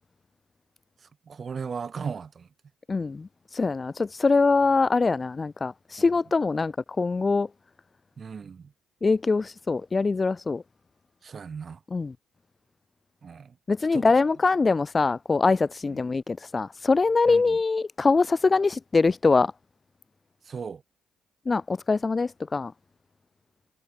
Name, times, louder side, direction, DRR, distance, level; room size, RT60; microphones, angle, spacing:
voice 1, 1.3-2.5 6.0-6.1 8.2-8.7 11.2-11.8 13.2-13.5 13.9-14.1 17.3-17.6 20.5-20.8, right 6 dB, 40° right, 1.8 m, -36 dB
voice 2, 2.9-7.5 9.0-10.6 11.9-12.1 13.7-19.5 21.5-22.7, left 4 dB, 30° left, 0.9 m, -23 dB
cardioid pair, 90°, 0 cm